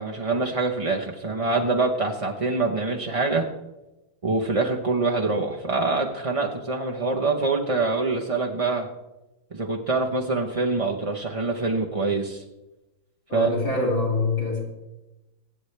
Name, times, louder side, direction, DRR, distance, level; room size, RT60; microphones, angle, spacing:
voice 1, 0.0-3.5 4.2-8.9 9.6-12.4 13.3-13.5, right 3 dB, 35° right, -1 dB, 0.5 m, -25 dB
voice 2, 13.3-14.6, left 3 dB, 75° left, -5 dB, 4.9 m, -24 dB
25.0 x 8.8 x 3.3 m, 1.0 s
omnidirectional pair, 2.2 m